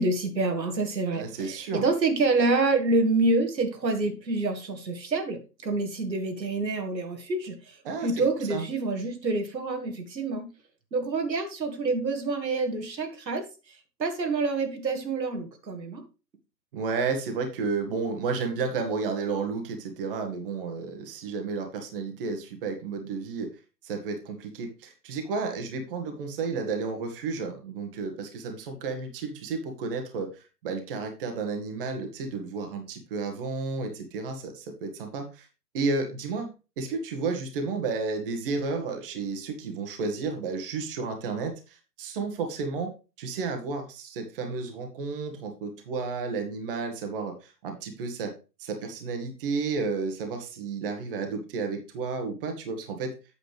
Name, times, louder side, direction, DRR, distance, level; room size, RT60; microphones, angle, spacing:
voice 1, 0.0-10.5 10.9-16.0, right 3 dB, 90° right, 5 dB, 2.2 m, -27 dB
voice 2, 1.1-1.9 7.8-8.1 8.5-8.6 16.7-23.5 23.8-35.5 35.7-36.5 36.8-42.9 43.2-48.3 48.6-53.1, right 4 dB, 35° right, 5 dB, 1.6 m, -32 dB
8.3 x 7.1 x 3.3 m, 0.31 s
hypercardioid pair, 150°, 49 cm